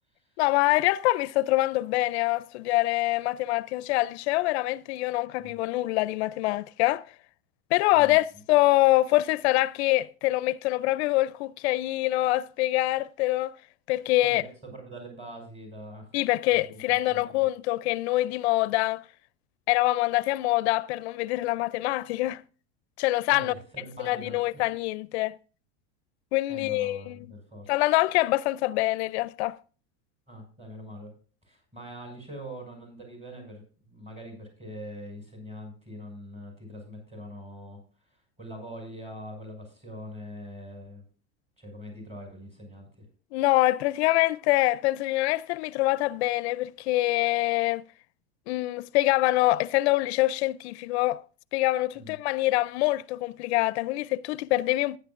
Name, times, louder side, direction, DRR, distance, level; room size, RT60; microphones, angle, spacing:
voice 1, 0.4-7.0 7.7-13.6 13.9-14.4 16.1-19.0 19.7-22.4 23.0-23.5 24.0-25.4 26.3-27.3 27.7-29.6 43.3-47.8 48.5-51.2 51.5-55.0, left 18 dB, 75° left, 0.5 m, -25 dB
voice 2, 14.2-16.1 16.5-16.8 17.1-17.2 23.3-24.4 26.5-27.7 30.3-31.1 31.4-33.6 33.9-37.8 38.4-41.0 41.6-42.9 52.0-52.1, equal, 20° right, 5.7 m, -43 dB
14.5 x 9.8 x 2.4 m
supercardioid pair, 145°, 33 cm